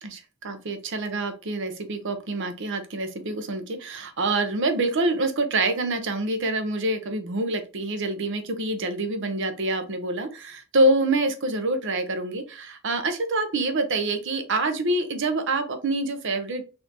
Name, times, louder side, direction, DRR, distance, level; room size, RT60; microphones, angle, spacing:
voice 1, 0.0-16.6, right 2 dB, 60° right, 8 dB, 0.7 m, -26 dB
4.2 x 2.7 x 2.8 m, 0.34 s
head